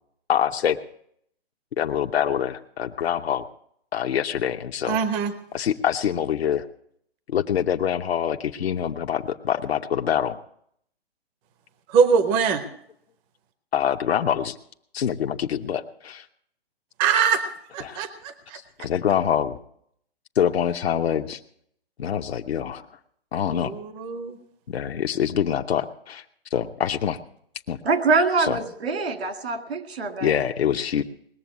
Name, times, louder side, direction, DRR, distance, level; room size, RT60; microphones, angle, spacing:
voice 1, 0.3-0.8 1.8-3.4 3.9-5.0 5.5-6.6 7.3-10.4 13.7-14.6 14.9-16.3 17.8-18.0 18.8-19.6 20.3-21.4 22.0-22.9 23.3-23.7 24.7-26.2 26.5-27.2 27.7-27.8 28.1-28.6 30.2-31.0, left 9 dB, 70° left, 3 dB, 0.9 m, -25 dB
voice 2, 4.9-5.3 11.9-12.6 17.0-17.5 17.7-18.6 23.5-24.4, right 6 dB, 15° right, 11 dB, 0.6 m, -22 dB
voice 3, 27.8-30.3, right 4 dB, 75° right, 6 dB, 2.2 m, -24 dB
20.0 x 7.0 x 8.4 m, 0.69 s
hypercardioid pair, 150°, 31 cm